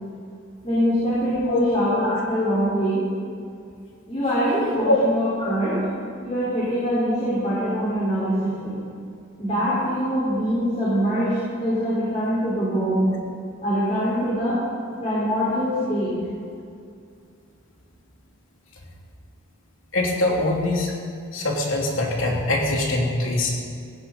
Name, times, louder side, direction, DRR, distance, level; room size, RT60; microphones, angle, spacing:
voice 1, 0.6-3.0 4.1-5.8 6.2-8.8 9.4-13.1 13.6-14.6 15.0-16.2, equal, 35° left, -10 dB, 4.9 m, -23 dB
voice 2, 19.9-20.9 21.3-23.6, left 2 dB, 90° left, -1 dB, 2.9 m, -23 dB
17.5 x 15.5 x 4.2 m, 2.4 s
head